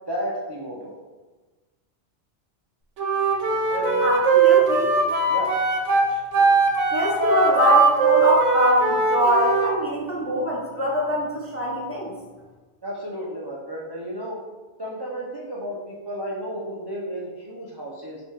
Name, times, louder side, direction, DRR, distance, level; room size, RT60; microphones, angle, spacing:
voice 1, 0.1-0.9 3.7-4.0 5.3-5.5 12.8-14.4 14.8-18.2, equal, 35° right, -4 dB, 0.4 m, -32 dB
Wind instrument woodwind instrument, 3.0-9.7, right 4 dB, 85° right, 1.0 m, -20 dB
voice 2, 4.0-4.9 6.9-12.1, equal, 15° left, -4 dB, 0.5 m, -23 dB
5.3 x 2.9 x 3.3 m, 1.3 s
omnidirectional pair, 1.2 m